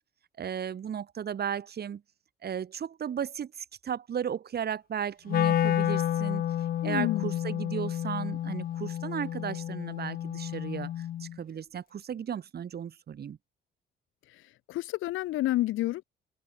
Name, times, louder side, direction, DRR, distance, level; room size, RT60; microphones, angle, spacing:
voice 1, 0.4-2.0 2.4-6.4 6.8-13.4, right 8 dB, 55° right, 2.1 m, -35 dB
Wind instrument woodwind instrument, 5.3-11.4, left 11 dB, 50° left, 0.4 m, -30 dB
voice 2, 6.8-7.4 14.7-16.0, left 16 dB, 85° left, 1.3 m, -29 dB
cardioid pair, 90°, 20 cm